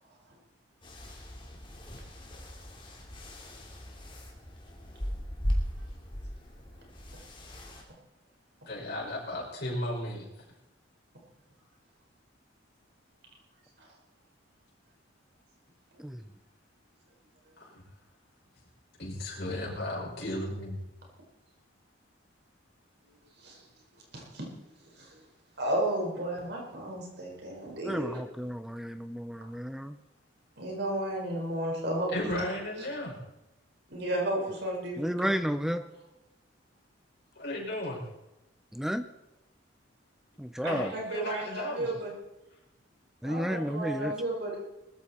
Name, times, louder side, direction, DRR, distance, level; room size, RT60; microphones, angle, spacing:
sound 1, 0.8-7.8, equal, 25° left, 3.0 m, -38 dB
voice 1, 8.7-10.3 17.6-17.8 19.0-20.8 32.1-33.2 37.4-38.0 40.7-41.9, left 1 dB, 55° left, -3 dB, 5.6 m, -35 dB
voice 2, 24.1-24.5 25.0-25.2 25.6-28.2 30.6-32.4 33.9-35.3 40.6-42.1 43.2-44.6, right 1 dB, 60° right, -1 dB, 4.8 m, -33 dB
voice 3, 27.8-30.0 35.0-35.8 38.7-39.0 40.4-40.9 43.2-44.1, equal, ahead, 11 dB, 0.5 m, -32 dB
20.0 x 14.0 x 4.3 m, 0.94 s
head